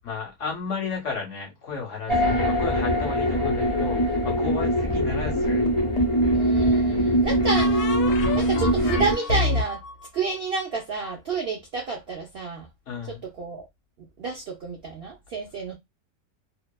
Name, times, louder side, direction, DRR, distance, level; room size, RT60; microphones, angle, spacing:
voice 1, 0.0-5.6 12.9-13.2, left 5 dB, 60° left, 0.8 m, -33 dB
sound 1, 2.1-9.1, equal, 40° left, 0.4 m, -22 dB
voice 2, 2.1-2.4 6.3-7.9 8.3-9.8 10.1-12.7 13.1-13.7 14.0-15.8, right 4 dB, 90° right, 0.5 m, -30 dB
sound 2, 5.4-6.2 7.5-11.1, left 3 dB, 80° left, 1.2 m, -30 dB
2.7 x 2.1 x 2.2 m
omnidirectional pair, 1.8 m